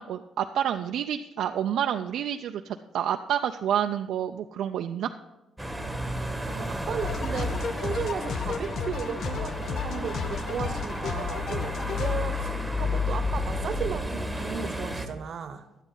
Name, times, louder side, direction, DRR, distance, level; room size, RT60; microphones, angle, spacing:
voice 1, 0.0-5.1, right 9 dB, 75° right, 5 dB, 0.4 m, -29 dB
sound 1, 5.6-15.1, left 1 dB, ahead, 1.3 m, -32 dB
voice 2, 6.5-15.7, right 6 dB, 60° right, 11 dB, 0.9 m, -35 dB
sound 2, 7.0-12.2, left 8 dB, 65° left, 0.5 m, -34 dB
12.0 x 9.9 x 3.8 m, 1.0 s
cardioid pair, 90°, 0 cm